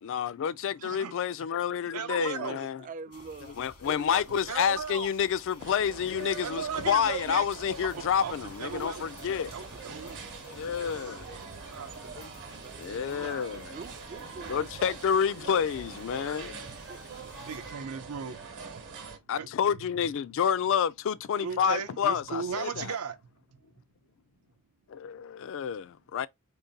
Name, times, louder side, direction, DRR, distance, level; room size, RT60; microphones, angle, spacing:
voice 1, 0.0-2.8 3.6-9.5 10.5-11.3 12.2-12.3 12.8-13.7 14.5-16.6 19.3-22.9 24.9-26.3, left 8 dB, 60° left, 0.3 m, -29 dB
voice 2, 0.8-1.2 1.9-2.6 4.0-5.1 6.4-7.4 7.9-9.1 9.5-10.3 11.7-12.2 17.1-18.8 19.3-19.5 21.4-23.2 23.5-23.6, right 6 dB, 80° right, 0.6 m, -37 dB
voice 3, 2.3-3.6 12.0-15.7 16.9-17.1, right 5 dB, 35° right, 0.3 m, -45 dB
sound 1, 3.1-17.7, left 3 dB, 90° left, 1.4 m, -53 dB
sound 2, 5.6-19.2, right 4 dB, 55° right, 1.0 m, -44 dB
3.8 x 2.2 x 3.9 m
head